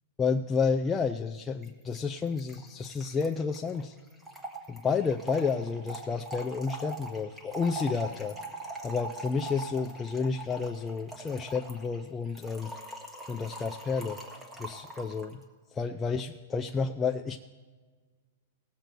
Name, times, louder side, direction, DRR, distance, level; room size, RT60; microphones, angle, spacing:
voice 1, 0.2-4.0 4.7-8.3 8.8-12.7 13.3-14.2 14.6-15.4 15.7-17.4, left 5 dB, 15° left, 3 dB, 0.4 m, -30 dB
Trickle dribble / Fill (with liquid), 1.6-1.7 1.9-2.0 2.2-15.3, right 2 dB, 10° right, 1.5 m, -42 dB
18.0 x 7.8 x 4.5 m, 1.5 s
hypercardioid pair, 140°, 0 cm